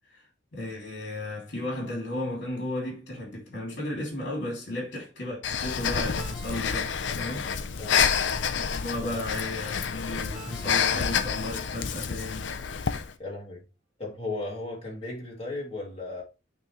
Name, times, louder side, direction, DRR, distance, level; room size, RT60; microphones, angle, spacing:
voice 1, 0.5-7.5 8.7-12.5, left 1 dB, 65° left, 2.7 m, -34 dB
Breathing, 5.4-13.1, left 7 dB, 80° left, 0.6 m, -28 dB
Ringtone, 6.0-7.7 10.2-11.8, right 1 dB, ahead, 2.7 m, -48 dB
voice 2, 13.2-13.6 14.0-16.2, left 2 dB, 35° left, 2.8 m, -36 dB
8.7 x 3.7 x 3.1 m
head